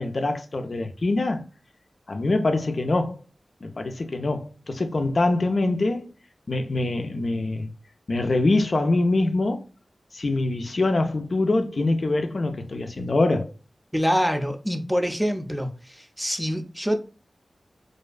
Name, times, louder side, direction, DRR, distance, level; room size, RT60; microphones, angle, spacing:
voice 1, 0.0-1.4 2.1-3.2 3.6-6.1 6.5-7.7 8.1-9.6 10.1-13.5, left 2 dB, 65° left, 0.3 m, -24 dB
voice 2, 13.9-17.0, equal, 5° right, 0.4 m, -25 dB
2.5 x 2.2 x 2.3 m
cardioid pair, 45°, 0 cm